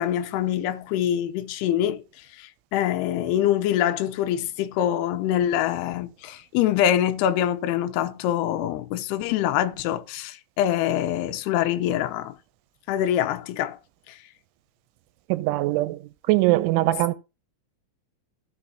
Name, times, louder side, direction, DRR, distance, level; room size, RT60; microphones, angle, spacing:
voice 1, 0.0-2.0 2.4-12.4 12.9-13.8 14.1-14.2, left 11 dB, 75° left, 2.5 m, -25 dB
voice 2, 15.3-17.1, right 18 dB, 90° right, 3.1 m, -22 dB
15.5 x 6.4 x 2.9 m
omnidirectional pair, 5.4 m